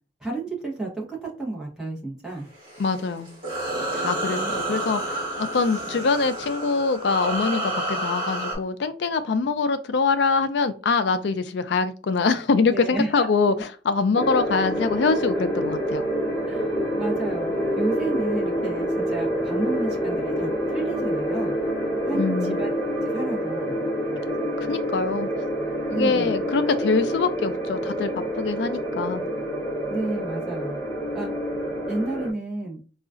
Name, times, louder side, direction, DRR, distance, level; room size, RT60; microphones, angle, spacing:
voice 1, 0.2-2.5 4.3-4.6 12.7-13.3 16.5-17.5 17.7-21.6 22.0-22.7 23.0-23.8 25.9-26.3 29.9-30.8 31.1-31.3 31.9-32.8, right 2 dB, 5° right, -4 dB, 1.0 m, -31 dB
sound 1, 2.5-8.5, right 1 dB, 25° right, 1.5 m, -29 dB
voice 2, 2.8-3.3 3.9-13.5 13.8-16.0 22.1-22.6 24.6-25.3 25.9-29.2, left 4 dB, 65° left, 11 dB, 0.4 m, -24 dB
sound 2, 14.1-32.3, equal, 15° left, 1.5 m, -27 dB
3.9 x 2.4 x 2.4 m, 0.37 s
head